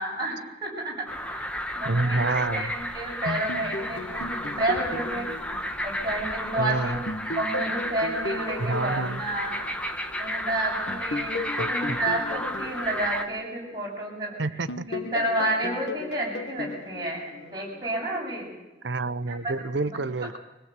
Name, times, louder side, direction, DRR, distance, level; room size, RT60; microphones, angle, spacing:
voice 1, 0.0-1.5 1.8-5.3 5.8-7.0 7.4-9.7 10.2-14.6 14.9-18.5 19.3-19.5 19.9-20.0, right 1 dB, 20° right, -3 dB, 7.5 m, -30 dB
sound 1, 1.1-13.2, equal, 5° left, 1.2 m, -32 dB
voice 2, 1.8-2.7 6.6-7.0 8.6-9.2 11.6-12.0 14.4-14.9 18.8-20.4, right 3 dB, 80° right, 11 dB, 0.8 m, -28 dB
sound 2, 3.3-6.6 7.1-10.3 10.9-14.2 14.7-17.9, left 2 dB, 75° left, 1.2 m, -36 dB
24.5 x 16.5 x 8.2 m, 1.1 s
head